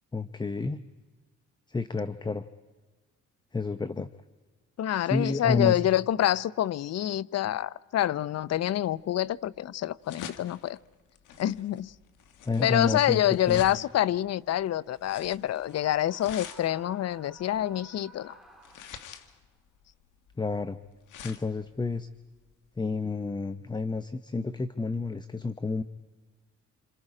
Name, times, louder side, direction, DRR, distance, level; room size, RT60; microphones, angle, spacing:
voice 1, 0.1-0.8 1.7-2.4 3.5-4.1 5.0-5.8 12.4-13.6 20.4-20.8 21.2-22.1 22.8-25.8, left 3 dB, 15° left, 12 dB, 0.7 m, -30 dB
voice 2, 4.8-10.8 11.4-11.9 12.6-18.3, left 12 dB, 55° left, 20 dB, 0.6 m, -27 dB
sound 1, 8.5-23.3, left 8 dB, 80° left, 1.4 m, -47 dB
Screaming, 15.6-19.3, right 1 dB, ahead, 2.3 m, -54 dB
27.5 x 26.5 x 4.9 m, 1.3 s
cardioid pair, 90°, 30 cm